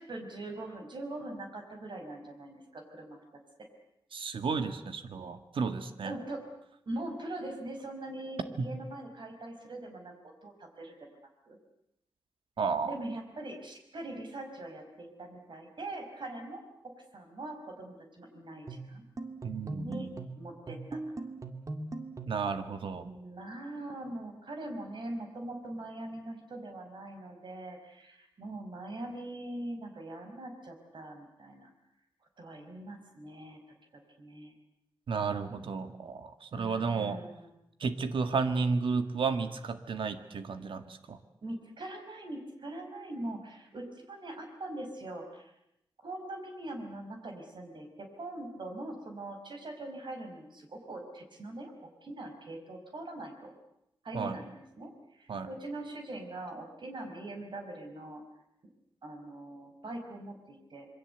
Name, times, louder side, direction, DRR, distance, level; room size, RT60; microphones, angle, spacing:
voice 1, 0.0-3.2 6.0-6.4 6.9-10.1 10.4-11.0 11.5-11.6 12.9-16.7 17.1-19.0 19.8-21.0 23.0-31.7 32.4-33.6 33.9-34.6 36.5-37.5 41.4-45.5 46.0-51.7 52.0-53.5 54.0-58.2 59.0-60.9, right 1 dB, 65° right, 4 dB, 5.4 m, -42 dB
voice 2, 4.1-6.1 8.6-8.7 12.6-12.9 19.4-20.1 22.3-23.1 35.1-37.2 37.8-41.2 54.1-54.4 55.3-55.5, right 5 dB, 85° right, 9 dB, 1.7 m, -32 dB
sound 1, 18.7-22.5, right 2 dB, 40° right, 2.3 m, -40 dB
26.5 x 22.5 x 8.1 m, 0.83 s
wide cardioid pair, 85°, 9 cm